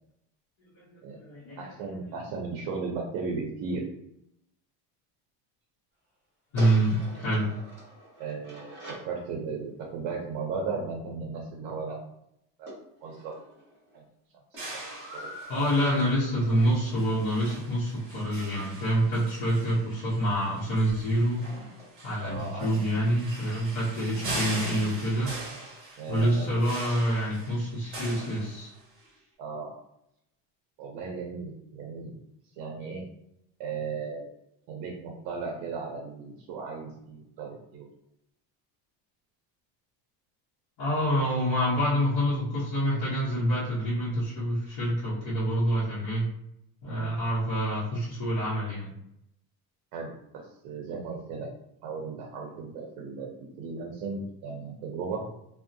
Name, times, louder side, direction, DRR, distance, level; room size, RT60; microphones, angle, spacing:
voice 1, 0.8-1.7 6.5-7.5 15.5-21.4 22.0-25.3 26.1-28.7 40.8-46.3 46.8-48.9, equal, 45° left, -10 dB, 0.8 m, -27 dB
voice 2, 1.6-3.8 8.2-8.7 9.0-12.0 12.6-12.7 13.0-13.3 13.9-14.0 15.1-15.6 22.2-22.7 26.0-26.7 29.4-29.7 30.8-32.1 32.5-33.0 33.6-34.3 34.7-37.9 46.9-47.1 49.9-51.5 51.8-55.2, right 4 dB, 70° right, 0 dB, 0.6 m, -36 dB
sound 1, 6.6-9.1 12.7-14.1 14.5-18.7 20.6-20.7 20.9-21.0 21.4-21.5 21.8-21.9 22.3-22.4 22.7-22.9, equal, 5° right, 1.3 m, -47 dB
sound 2, 14.6-29.0, right 2 dB, 30° right, 0.8 m, -41 dB
2.6 x 2.1 x 2.6 m, 0.78 s
cardioid pair, 165°, 41 cm